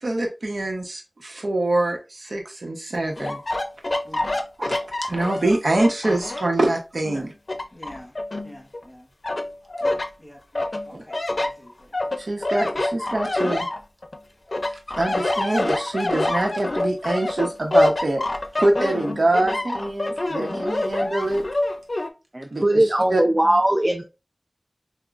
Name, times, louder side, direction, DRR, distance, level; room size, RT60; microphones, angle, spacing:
voice 1, 0.0-3.4 4.6-7.3 10.9-11.0 12.2-13.7 15.0-18.2 18.6-21.4 22.5-23.2, right 2 dB, 90° right, 1.0 m, -24 dB
sound 1, 3.2-6.6 7.0-8.8 9.2-10.1 10.5-14.2 14.5-22.1, left 2 dB, 65° left, 0.5 m, -26 dB
voice 2, 7.7-8.1 8.4-9.0 9.8-11.0 11.3-11.7 19.4-19.6, left 1 dB, 20° left, 1.2 m, -44 dB
voice 3, 22.3-24.0, right 1 dB, 30° right, 0.6 m, -20 dB
5.9 x 2.3 x 2.5 m
wide cardioid pair, 60°, 0 cm